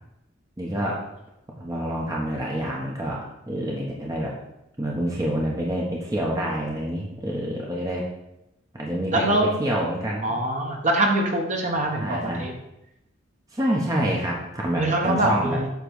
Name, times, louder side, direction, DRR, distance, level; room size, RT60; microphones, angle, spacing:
voice 1, 0.6-1.0 1.6-3.2 3.5-4.3 4.8-8.0 8.7-10.2 11.8-12.4 13.5-15.6, right 1 dB, 20° right, -3 dB, 1.0 m, -27 dB
voice 2, 9.1-9.5 10.2-12.5 14.8-15.7, right 1 dB, 35° right, 1 dB, 1.2 m, -23 dB
8.2 x 3.3 x 6.3 m, 0.87 s
head